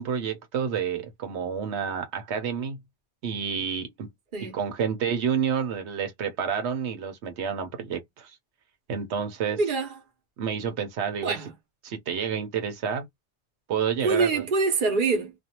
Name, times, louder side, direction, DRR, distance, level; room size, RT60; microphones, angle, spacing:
voice 1, 0.0-2.8 3.2-4.1 4.5-8.4 8.9-9.6 10.4-11.3 11.8-13.1 13.7-14.4, right 7 dB, 85° right, 1.0 m, -29 dB
voice 2, 9.5-9.9 11.2-11.5 14.0-15.3, right 4 dB, 50° right, 0.9 m, -25 dB
2.5 x 2.2 x 2.8 m
omnidirectional pair, 1.1 m